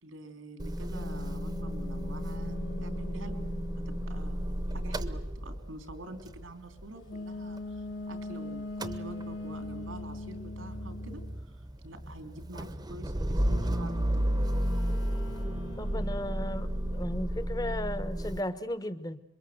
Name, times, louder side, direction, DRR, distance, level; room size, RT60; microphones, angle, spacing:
voice 1, 0.0-3.5 3.8-7.8 8.1-14.3, right 1 dB, 90° right, 8 dB, 3.4 m, -46 dB
Motor vehicle (road) / Engine starting / Idling, 0.6-8.3 8.6-18.4, equal, 20° right, 1.0 m, -33 dB
sound 1, 0.9-4.8 7.1-11.4 13.4-17.2, left 2 dB, 85° left, 2.7 m, -42 dB
voice 2, 15.8-19.2, left 1 dB, 20° left, 14 dB, 1.2 m, -35 dB
27.0 x 23.0 x 7.9 m, 0.81 s
head